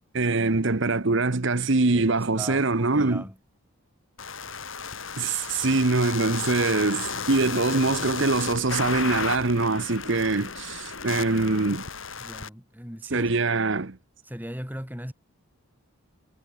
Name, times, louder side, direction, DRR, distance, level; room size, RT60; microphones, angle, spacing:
voice 1, 0.1-3.2 5.2-11.8 13.1-14.0, right 3 dB, 55° right, 1.1 m, -24 dB
voice 2, 1.9-3.4 11.1-11.2 12.2-13.3 14.2-15.1, equal, 10° right, 4.9 m, -38 dB
sound 1, 4.2-12.5, left 5 dB, 65° left, 7.8 m, -34 dB
head